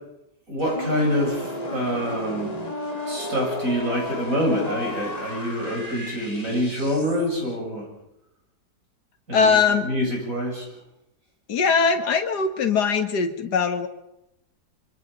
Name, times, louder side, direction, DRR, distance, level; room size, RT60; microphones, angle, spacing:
voice 1, 0.5-2.5 3.1-7.8 9.3-10.7, equal, 55° right, -1 dB, 8.5 m, -26 dB
sound 1, 0.6-7.3, left 1 dB, 25° left, 2.9 m, -33 dB
voice 2, 9.3-9.9 11.5-13.9, left 5 dB, 80° left, 6 dB, 2.1 m, -21 dB
26.0 x 25.0 x 5.3 m, 0.84 s
omnidirectional pair, 1.7 m